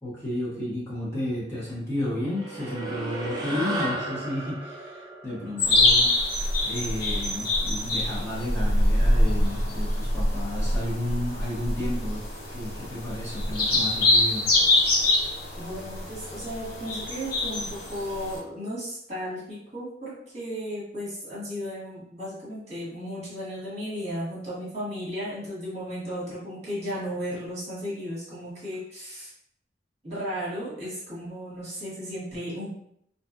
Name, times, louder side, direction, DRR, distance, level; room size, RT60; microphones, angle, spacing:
voice 1, 0.0-6.4 6.6-12.2 12.5-14.5, left 1 dB, 15° left, -8 dB, 0.8 m, -32 dB
sound 1, 2.2-6.9, right 1 dB, 20° right, 0.5 m, -34 dB
sound 2, 5.6-18.4, left 1 dB, 50° left, 0.8 m, -25 dB
voice 2, 15.6-29.3 30.0-32.7, equal, 35° right, -8 dB, 1.1 m, -35 dB
2.6 x 2.3 x 2.4 m, 0.71 s
head